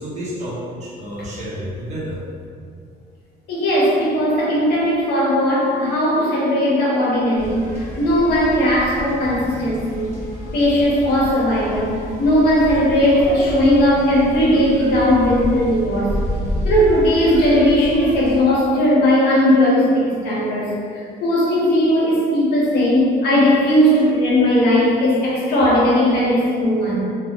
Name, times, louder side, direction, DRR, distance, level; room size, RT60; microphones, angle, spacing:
voice 1, 0.0-2.2, equal, 40° right, -7 dB, 0.8 m, -30 dB
voice 2, 3.5-10.1 10.5-16.1 16.6-27.0, equal, 75° left, -5 dB, 0.7 m, -17 dB
sound 1, 7.4-18.4, equal, 15° left, 0.8 m, -30 dB
2.1 x 2.0 x 2.9 m, 2.2 s
cardioid pair, 110°, 17 cm